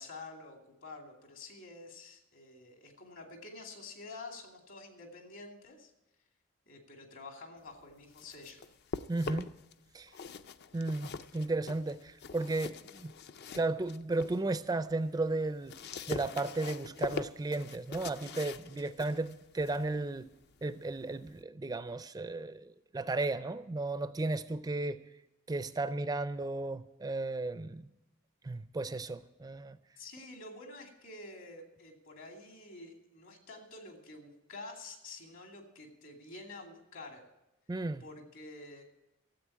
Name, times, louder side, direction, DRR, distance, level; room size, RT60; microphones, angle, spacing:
voice 1, 0.0-5.9 6.7-8.6 30.0-37.2 38.0-38.8, left 2 dB, 70° left, 2.7 m, -49 dB
sound 1, 7.9-9.7 10.1-14.4 14.8-21.4, left 4 dB, 50° left, 0.5 m, -44 dB
voice 2, 9.1-9.5 9.9-10.1 10.7-13.1 13.5-15.8 16.1-20.3 20.6-25.0 25.5-27.9 28.4-29.8 37.7-38.0, right 2 dB, 20° right, 0.4 m, -34 dB
13.5 x 7.9 x 8.5 m
head